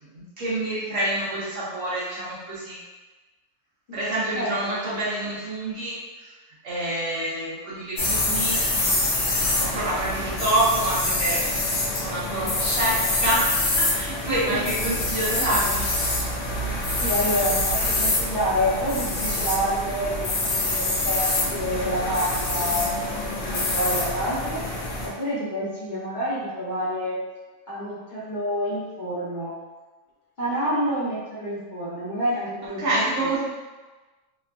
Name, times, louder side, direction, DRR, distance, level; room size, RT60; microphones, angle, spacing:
voice 1, 0.0-2.8 3.9-6.3 6.6-8.7 9.6-11.4 12.0-15.9 32.8-33.4, right 1 dB, 65° right, -8 dB, 1.2 m, -27 dB
sound 1, 8.0-25.1, left 2 dB, 70° left, 1.1 m, -26 dB
voice 2, 14.3-14.6 17.0-21.2 21.5-24.6 25.0-27.2 27.7-29.5 30.4-33.4, equal, 45° left, -10 dB, 0.8 m, -28 dB
3.0 x 2.3 x 2.4 m, 1.3 s
omnidirectional pair, 1.4 m